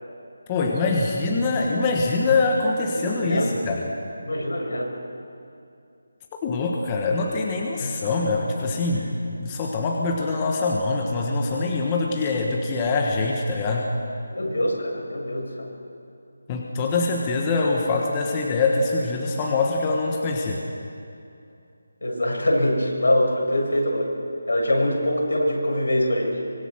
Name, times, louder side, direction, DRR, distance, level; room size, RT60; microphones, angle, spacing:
voice 1, 0.5-3.9 6.4-13.9 16.5-20.6, left 3 dB, 15° left, 0 dB, 1.4 m, -24 dB
voice 2, 2.9-3.8 4.3-4.9 7.8-8.1 8.9-9.0 14.3-15.7 22.0-24.1 24.5-26.4, left 1 dB, 80° left, -2 dB, 7.4 m, -24 dB
24.5 x 22.5 x 6.4 m, 2.6 s
figure-of-eight pair, 175°, 0 cm